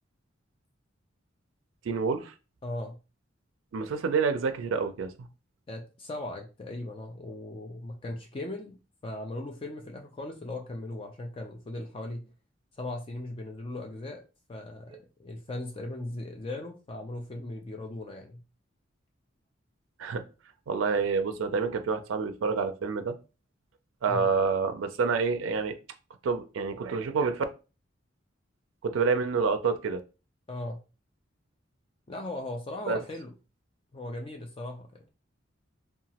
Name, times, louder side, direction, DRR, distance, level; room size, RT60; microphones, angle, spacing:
voice 1, 1.8-2.3 3.7-5.3 20.0-20.2 20.7-23.1 24.0-25.8 26.2-27.4 28.8-30.0 32.9-33.0, right 5 dB, 75° right, 8 dB, 0.4 m, -28 dB
voice 2, 2.6-3.0 5.7-8.8 9.0-12.2 12.8-14.2 14.5-18.4 24.1-24.3 30.5-30.8 32.1-33.3 33.9-34.9, left 2 dB, 25° left, 3 dB, 0.4 m, -38 dB
2.9 x 2.2 x 2.8 m, 0.31 s
head